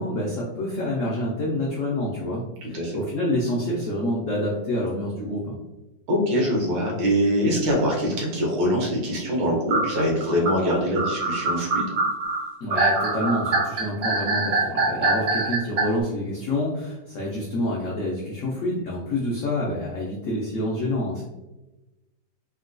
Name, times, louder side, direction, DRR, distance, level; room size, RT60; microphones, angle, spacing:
voice 1, 0.0-5.6 12.6-21.2, left 1 dB, 80° left, -4 dB, 0.7 m, -27 dB
voice 2, 2.6-3.0 6.1-11.9, equal, 85° right, -2 dB, 1.6 m, -23 dB
sound 1, 9.7-15.8, right 3 dB, 65° right, 0.6 m, -24 dB
3.8 x 2.2 x 2.5 m, 1.0 s
omnidirectional pair, 2.0 m